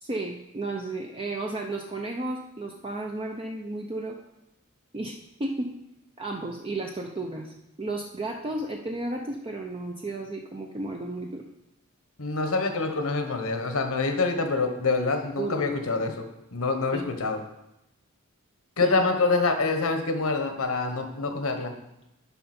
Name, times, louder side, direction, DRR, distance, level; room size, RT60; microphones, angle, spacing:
voice 1, 0.0-4.2 4.9-5.7 6.2-7.5 7.8-11.4 15.4-15.7 16.9-17.1 18.8-18.9, right 2 dB, 25° right, 0 dB, 0.6 m, -33 dB
voice 2, 12.2-16.3 16.5-17.4 18.8-21.7, left 3 dB, 70° left, 6 dB, 1.1 m, -26 dB
10.5 x 5.6 x 4.3 m, 0.89 s
head